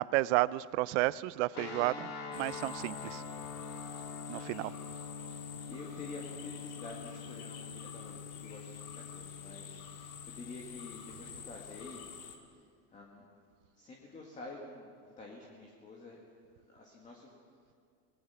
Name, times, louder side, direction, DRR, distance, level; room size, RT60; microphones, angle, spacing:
voice 1, 0.0-3.2 4.3-4.7, right 18 dB, 55° right, 19 dB, 0.5 m, -32 dB
sound 1, 1.5-11.9, left 5 dB, 35° left, 2.5 m, -45 dB
sound 2, 2.3-12.4, left 8 dB, 75° left, 3.1 m, -49 dB
voice 2, 5.7-9.8 10.3-12.0 12.9-13.2 13.8-16.2 16.7-17.3, left 3 dB, 15° left, -1 dB, 2.0 m, -48 dB
27.5 x 20.5 x 5.8 m, 2.2 s
supercardioid pair, 170°, 43 cm